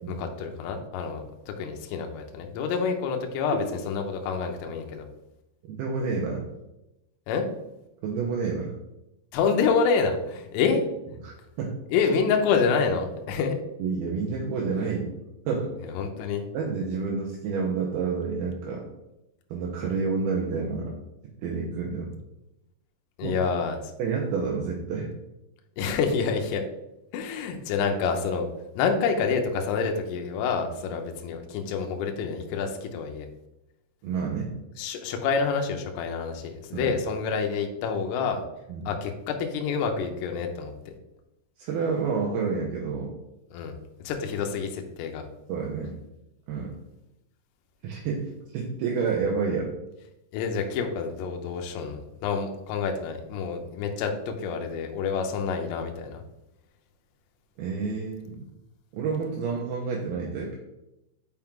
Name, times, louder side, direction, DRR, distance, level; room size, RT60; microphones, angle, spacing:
voice 1, 0.1-5.1 7.3-7.5 9.3-10.8 11.9-13.6 15.8-16.4 23.2-23.9 25.8-26.6 27.1-28.5 28.7-33.3 34.8-38.4 38.9-40.9 43.5-43.7 44.0-45.3 50.3-56.2, left 5 dB, 80° left, 3 dB, 2.7 m, -27 dB
voice 2, 5.7-6.5 8.0-8.7 11.2-11.7 13.8-15.1 15.5-15.7 16.5-18.9 19.5-20.9 21.4-22.1 23.2-23.4 24.0-25.1 34.0-34.5 36.7-36.9 38.7-38.9 41.6-43.2 45.5-46.0 46.5-46.7 47.8-49.8 57.6-58.5 58.9-60.6, right 5 dB, 80° right, -2 dB, 2.3 m, -29 dB
5.9 x 5.7 x 3.6 m, 0.91 s
omnidirectional pair, 5.2 m